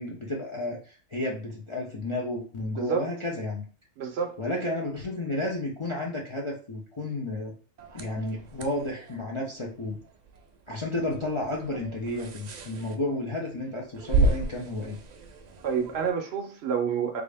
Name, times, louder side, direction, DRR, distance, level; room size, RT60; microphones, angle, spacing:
voice 1, 0.0-3.6 4.4-7.5 7.9-10.0 10.7-15.0, left 1 dB, 35° left, 0.5 m, -32 dB
voice 2, 2.8-3.1 4.0-4.4 15.6-17.2, right 7 dB, 65° right, 0.8 m, -28 dB
sound 1, 7.8-16.1, right 2 dB, 80° right, 0.3 m, -33 dB
3.5 x 2.5 x 3.3 m
omnidirectional pair, 1.3 m